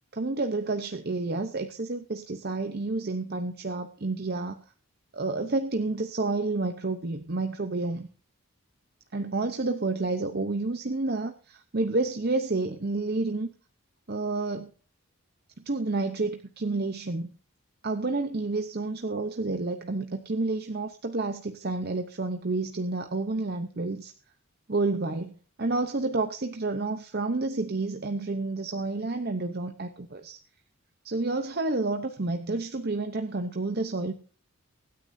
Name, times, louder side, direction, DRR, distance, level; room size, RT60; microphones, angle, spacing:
voice 1, 0.1-4.6 5.1-8.1 9.1-13.5 14.1-14.7 15.6-17.3 17.8-24.1 24.7-30.4 31.0-34.1, right 3 dB, 45° right, 7 dB, 0.8 m, -30 dB
24.0 x 9.7 x 2.7 m, 0.40 s
head